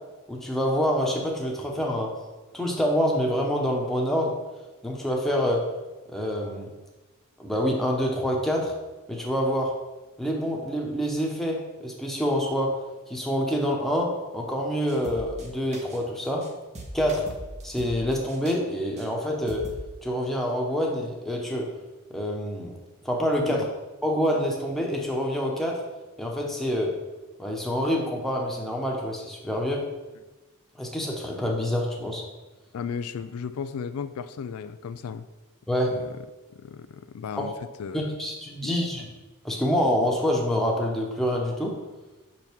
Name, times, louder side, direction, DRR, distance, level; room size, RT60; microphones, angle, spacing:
voice 1, 0.3-2.1 2.5-4.3 4.8-5.6 6.1-6.7 7.4-8.7 9.1-9.7 10.2-12.7 13.1-16.5 16.9-17.2 17.6-19.6 20.0-21.7 22.1-22.7 23.0-23.6 24.0-25.8 26.2-26.9 27.4-29.8 30.8-32.2 35.7-35.9 37.4-37.5 37.9-39.1 39.4-41.7, equal, ahead, -2 dB, 1.1 m, -26 dB
sound 1, 14.9-15.5 15.7-16.5 16.8-18.6 19.0-19.1 19.5-19.8, right 1 dB, 35° right, 1.0 m, -39 dB
voice 2, 32.7-35.3 35.9-36.2 36.5-37.5 37.8-38.2 38.6-38.9, left 6 dB, 90° left, 12 dB, 0.4 m, -35 dB
5.7 x 5.3 x 4.6 m, 1.1 s
head